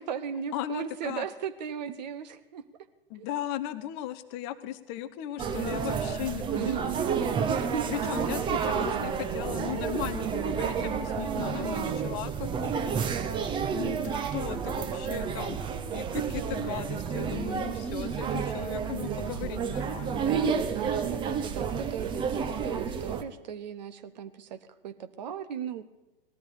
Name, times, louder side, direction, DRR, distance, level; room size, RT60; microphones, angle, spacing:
voice 1, 0.0-2.6 3.2-3.3 6.5-7.2 7.5-8.1 10.8-11.9 13.8-14.3 17.1-17.9 18.2-19.5 20.3-25.8, right 8 dB, 45° right, 10 dB, 1.2 m, -37 dB
voice 2, 0.5-1.3 3.1-6.9 7.9-13.0 13.7-13.9 14.3-15.6 15.9-20.3, left 12 dB, 30° left, 12 dB, 0.7 m, -37 dB
sound 1, 5.4-23.2, right 6 dB, 15° right, 0.9 m, -30 dB
18.0 x 13.5 x 5.0 m, 1.0 s
figure-of-eight pair, 105°, 29 cm